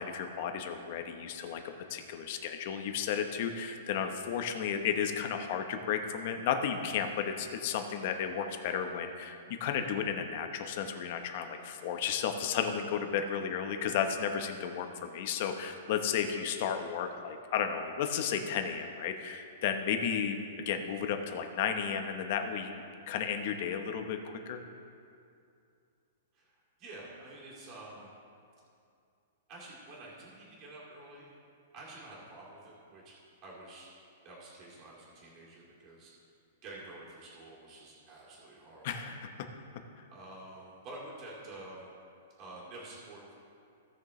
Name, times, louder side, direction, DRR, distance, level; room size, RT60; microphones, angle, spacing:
voice 1, 0.0-1.6 1.9-20.4 20.7-24.6 38.8-39.3, left 7 dB, 45° left, 6 dB, 0.9 m, -33 dB
voice 2, 26.3-28.1 29.5-31.3 31.7-33.1 33.4-33.9 34.2-36.1 36.6-39.1 40.1-41.9 42.4-43.3, right 2 dB, 30° right, -5 dB, 2.4 m, -49 dB
17.0 x 6.4 x 3.2 m, 2.5 s
hypercardioid pair, 160°, 0 cm